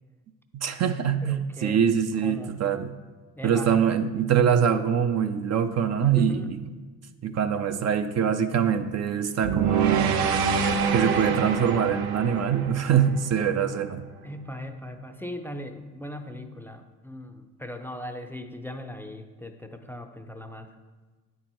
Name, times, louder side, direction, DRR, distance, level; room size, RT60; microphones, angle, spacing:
voice 1, 0.5-2.9 3.4-6.6 7.2-10.2 10.9-14.0, right 8 dB, 40° right, 8 dB, 0.5 m, -24 dB
voice 2, 1.2-1.8 2.2-2.5 3.4-3.7 6.1-6.5 14.2-20.7, left 1 dB, 5° left, 5 dB, 0.5 m, -39 dB
sound 1, 9.4-13.7, right 6 dB, 65° right, 0.8 m, -26 dB
9.1 x 4.5 x 4.4 m, 1.3 s
hypercardioid pair, 70°, 40 cm